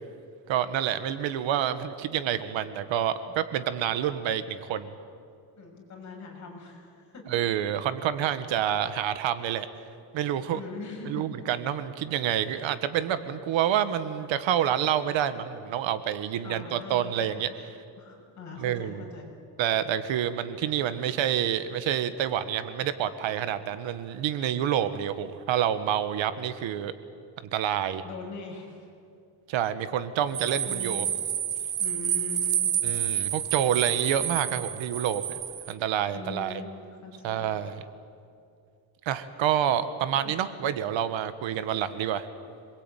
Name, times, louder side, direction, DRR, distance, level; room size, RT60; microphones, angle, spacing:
voice 1, 0.5-4.9 7.3-9.7 10.1-10.6 11.0-17.5 18.6-19.0 19.6-26.9 27.4-28.0 29.5-31.1 32.8-35.4 35.7-36.6 37.2-37.8 39.0-42.2, right 10 dB, 85° right, 12 dB, 1.5 m, -28 dB
voice 2, 5.6-7.3 10.5-11.3 16.4-17.5 17.9-19.3 28.0-28.9 30.7-31.0 31.8-32.7 36.1-36.7 37.0-37.5 40.2-40.3, left 4 dB, 40° left, -1 dB, 6.6 m, -42 dB
sound 1, 30.3-35.7, right 9 dB, 40° right, 1.0 m, -29 dB
27.0 x 21.5 x 9.2 m, 2.4 s
cardioid pair, 160°, 45 cm